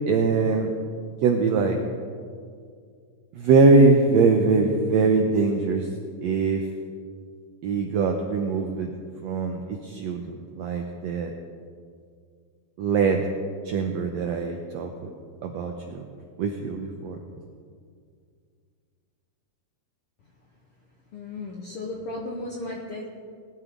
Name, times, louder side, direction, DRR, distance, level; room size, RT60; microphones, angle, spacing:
voice 1, 0.1-0.7 1.2-1.8 3.3-5.9 6.2-6.6 7.6-8.9 9.2-11.3 12.8-13.2 13.6-15.1 15.4-16.0 16.4-17.2, right 4 dB, 85° right, 4 dB, 1.5 m, -22 dB
voice 2, 21.1-23.1, left 2 dB, 70° left, -1 dB, 1.4 m, -35 dB
19.5 x 12.0 x 3.6 m, 2.2 s
omnidirectional pair, 4.0 m